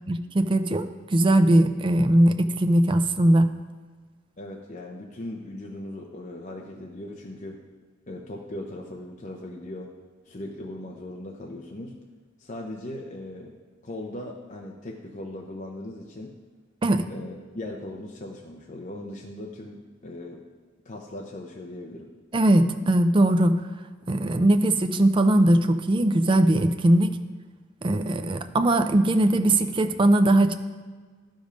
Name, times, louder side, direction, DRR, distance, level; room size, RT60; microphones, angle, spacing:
voice 1, 0.1-3.5 16.8-17.0 22.3-23.5 24.1-27.2 27.8-30.6, right 1 dB, 25° right, 8 dB, 0.4 m, -20 dB
voice 2, 4.4-7.6 8.1-9.9 10.3-11.9 12.4-13.5 13.8-16.3 17.1-20.4 20.8-22.1, left 1 dB, 40° left, 0 dB, 0.8 m, -38 dB
11.5 x 5.3 x 5.2 m, 1.5 s
head